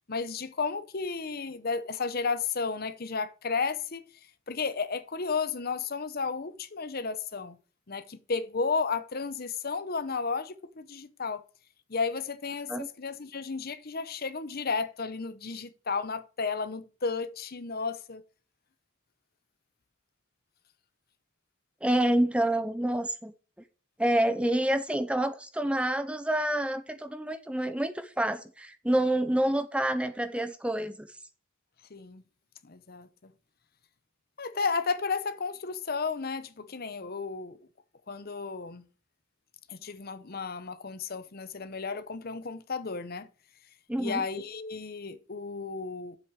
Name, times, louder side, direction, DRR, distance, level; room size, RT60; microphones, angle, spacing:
voice 1, 0.1-4.1 4.5-7.6 7.9-11.4 11.9-18.2 31.9-32.2 32.6-33.3 34.4-37.6 38.1-38.8 39.7-43.3 44.0-46.2, left 4 dB, 45° left, 0.8 m, -33 dB
voice 2, 21.8-23.3 24.0-31.1 43.9-44.3, right 1 dB, 5° right, 0.5 m, -28 dB
7.7 x 6.1 x 6.3 m
head